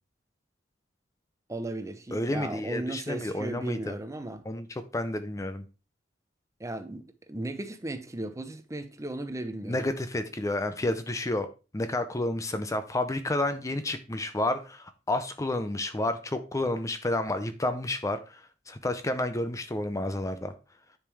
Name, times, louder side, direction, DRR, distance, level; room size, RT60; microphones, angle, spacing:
voice 1, 1.5-4.4 6.6-9.8, right 2 dB, 15° right, 0.7 m, -36 dB
voice 2, 2.1-3.9 4.5-4.7 4.9-5.6 9.6-11.5 11.7-18.4 18.7-20.5, left 1 dB, 15° left, 0.5 m, -30 dB
10.0 x 5.1 x 3.5 m
head